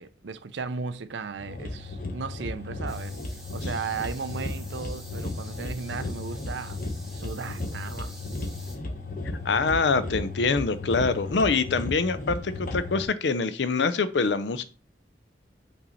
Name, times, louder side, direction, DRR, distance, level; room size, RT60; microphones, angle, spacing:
voice 1, 0.0-6.8 7.1-8.2, right 5 dB, 85° right, 0.5 m, -36 dB
sound 1, 1.4-13.1, left 2 dB, 50° left, 1.0 m, -35 dB
sound 2, 2.9-8.8, right 1 dB, ahead, 2.1 m, -49 dB
voice 2, 9.4-14.6, left 4 dB, 80° left, 0.6 m, -25 dB
5.4 x 4.2 x 4.2 m
head